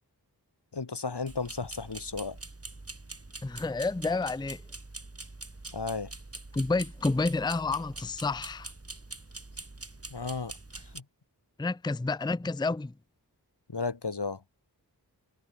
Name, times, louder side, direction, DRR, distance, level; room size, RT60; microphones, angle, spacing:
voice 1, 0.7-2.4 5.7-6.1 10.1-10.5 10.9-11.0 13.7-14.4, left 4 dB, 80° left, 1.9 m, -34 dB
sound 1, 1.3-11.0, right 2 dB, 35° right, 2.1 m, -44 dB
voice 2, 3.4-4.6 6.5-8.7 11.6-12.9, left 3 dB, 10° left, 0.5 m, -29 dB
wide cardioid pair, 45°, 40 cm